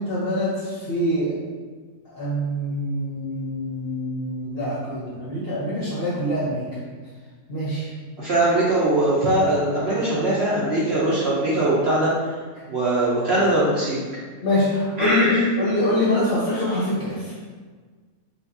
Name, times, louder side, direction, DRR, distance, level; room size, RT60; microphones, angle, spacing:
voice 1, 0.0-1.3 2.1-6.6 7.5-7.9 14.4-17.3, left 1 dB, 50° left, -7 dB, 0.8 m, -24 dB
voice 2, 8.2-12.3 12.7-14.0 15.0-15.4, right 1 dB, 60° right, -7 dB, 0.7 m, -21 dB
5.0 x 2.4 x 2.6 m, 1.5 s
omnidirectional pair, 1.6 m